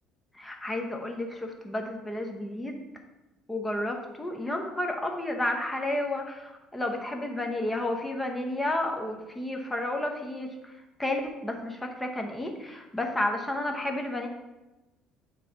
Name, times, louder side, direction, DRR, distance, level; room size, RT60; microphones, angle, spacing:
voice 1, 0.3-2.8 3.5-10.7 11.0-14.3, left 1 dB, 10° left, 3 dB, 1.0 m, -31 dB
8.3 x 3.2 x 3.9 m, 1.0 s
cardioid pair, 105°, 0 cm